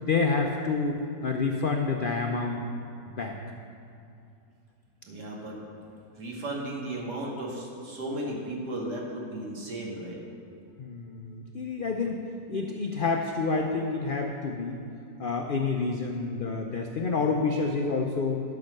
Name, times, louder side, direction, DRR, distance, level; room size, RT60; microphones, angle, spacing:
voice 1, 0.0-2.6 3.2-3.3 10.8-12.2 12.5-14.8 15.2-18.4, left 4 dB, 75° left, 3 dB, 0.4 m, -28 dB
voice 2, 5.1-5.6 6.1-10.2, right 1 dB, 90° right, -2 dB, 2.3 m, -35 dB
12.0 x 5.8 x 6.5 m, 2.5 s
omnidirectional pair, 1.7 m